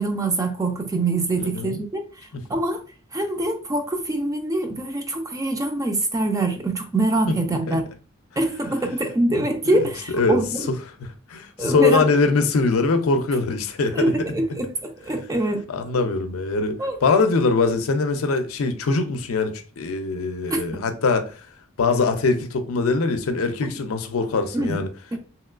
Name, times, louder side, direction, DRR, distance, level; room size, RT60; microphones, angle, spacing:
voice 1, 0.0-2.1 2.5-2.8 3.1-7.8 8.4-10.7 11.6-12.1 13.9-15.6 16.8-17.0 20.5-20.8 24.5-24.8 25.1-25.2, right 2 dB, 15° right, 0.4 m, -24 dB
voice 2, 1.4-1.8 2.3-2.5 7.3-7.8 9.7-14.1 15.7-21.5 21.8-24.9, left 4 dB, 75° left, 0.5 m, -23 dB
2.9 x 2.9 x 2.4 m
head